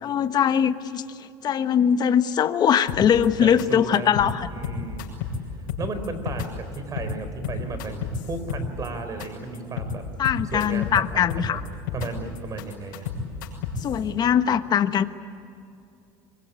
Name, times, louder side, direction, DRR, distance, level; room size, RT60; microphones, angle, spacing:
voice 1, 0.0-1.0 1.4-4.5 10.2-11.6 13.8-15.0, left 8 dB, 40° left, 10 dB, 1.3 m, -21 dB
sound 1, 2.9-3.3 3.6-3.7 3.9-4.3 4.6-5.4 5.7-6.5 6.7-7.1 7.4-8.9 9.2-9.3 9.5-9.9 10.2-11.0 11.3-12.1 12.4-13.9, left 6 dB, 85° left, 6.5 m, -31 dB
voice 2, 3.4-4.1 4.5-5.2 5.8-10.0 10.4-11.6 11.9-13.0, right 3 dB, 30° right, 9 dB, 4.3 m, -34 dB
26.0 x 23.5 x 9.7 m, 2.6 s
supercardioid pair, 110°, 11 cm